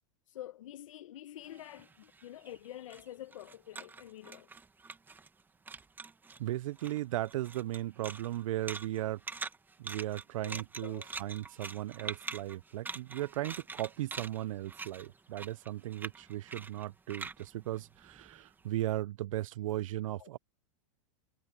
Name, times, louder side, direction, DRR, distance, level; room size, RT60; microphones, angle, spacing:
voice 1, 0.3-4.5 9.0-9.1 10.4-11.1 20.2-20.4, left 12 dB, 80° left, 0.9 m, -48 dB
sound 1, 1.5-5.4 5.7-6.4 6.8-18.6, right 4 dB, 10° right, 1.2 m, -45 dB
voice 2, 6.4-9.2 9.8-20.4, right 15 dB, 80° right, 0.4 m, -36 dB
hypercardioid pair, 130°, 17 cm